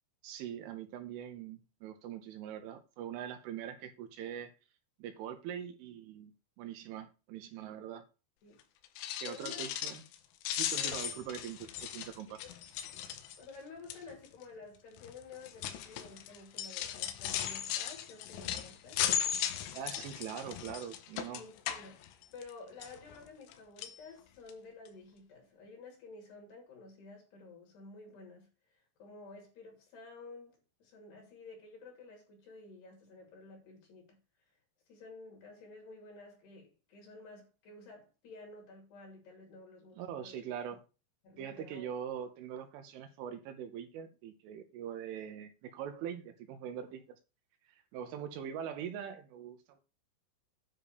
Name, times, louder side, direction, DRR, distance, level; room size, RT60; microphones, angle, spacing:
voice 1, 0.2-4.5 5.0-6.3 6.6-8.1 9.2-10.0 10.5-11.7 11.9-12.4 19.7-21.4 39.9-40.8 41.4-47.0 47.6-49.8, right 9 dB, 80° right, 3.1 m, -42 dB
sound 1, 8.8-10.2 10.4-13.6 13.9-14.3 15.0-22.5 22.8-23.5 23.8-24.0 24.5-24.6 24.9-25.0, left 10 dB, 80° left, 3.1 m, -37 dB
voice 2, 9.2-9.7 10.8-11.0 12.3-12.4 13.4-19.0 21.3-22.0 22.3-28.5 29.0-34.2 34.9-40.4 41.2-41.9, left 3 dB, 55° left, 4.4 m, -52 dB
10.0 x 3.7 x 6.7 m
omnidirectional pair, 5.9 m